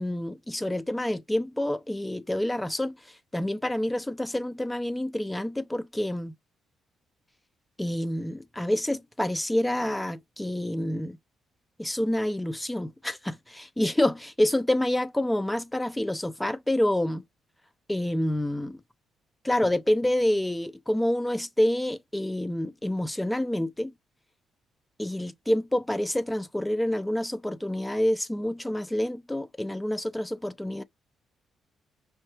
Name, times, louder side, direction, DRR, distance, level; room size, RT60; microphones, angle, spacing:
voice 1, 0.0-3.0 3.3-6.3 7.8-11.2 11.8-17.2 17.9-18.8 19.4-23.9 25.0-30.8, left 1 dB, 10° left, 0.6 m, -27 dB
5.7 x 2.8 x 2.8 m
cardioid pair, 90°, 0 cm